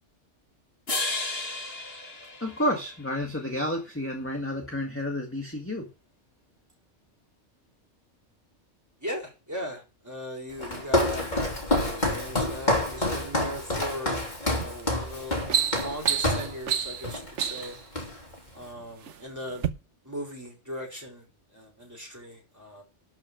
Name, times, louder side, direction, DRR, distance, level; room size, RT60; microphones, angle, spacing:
sound 1, 0.9-3.2, left 2 dB, 55° left, 2.4 m, -33 dB
voice 1, 2.4-5.9, left 1 dB, 10° left, 1 dB, 1.7 m, -30 dB
voice 2, 9.0-14.3 14.6-15.5 15.7-17.8 18.5-19.7 20.0-22.8, equal, 15° right, -2 dB, 4.3 m, -38 dB
Walk footsteps, 10.6-16.6 17.0-17.3 17.6-18.4, left 1 dB, 40° left, 3.3 m, -28 dB
sound 2, 14.6-14.8 15.2-17.8 18.6-19.2 19.5-19.7, right 8 dB, 75° right, 1.2 m, -29 dB
12.0 x 6.1 x 6.4 m, 0.30 s
omnidirectional pair, 1.2 m